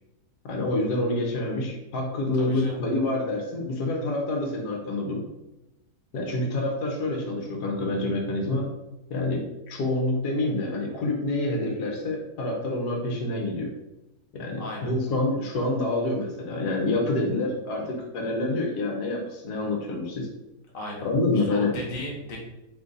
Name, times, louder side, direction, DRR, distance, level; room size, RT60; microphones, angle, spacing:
voice 1, 0.4-5.2 6.1-8.7 9.1-13.7 14.3-20.3 21.0-21.7, left 2 dB, 75° left, 1 dB, 1.3 m, -27 dB
voice 2, 2.3-2.8 14.6-14.9 20.7-21.1 21.4-22.4, left 1 dB, 40° left, -2 dB, 1.0 m, -35 dB
3.8 x 3.1 x 3.9 m, 0.95 s
omnidirectional pair, 1.7 m